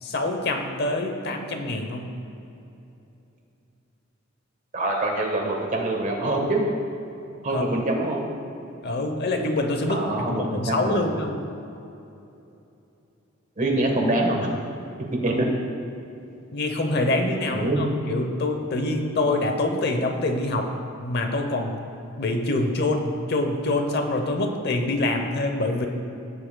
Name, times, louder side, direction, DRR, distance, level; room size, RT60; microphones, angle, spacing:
voice 1, 0.0-2.1 7.5-7.7 8.8-11.4 15.3-15.4 16.5-20.7 21.0-21.8 22.2-25.9, left 2 dB, 55° left, 5 dB, 0.8 m, -25 dB
voice 2, 4.7-6.7 7.4-8.2 9.9-11.0 13.6-14.5 15.2-15.5 17.5-17.8, right 2 dB, 40° right, 1 dB, 1.3 m, -24 dB
16.0 x 7.4 x 2.2 m, 2.8 s
head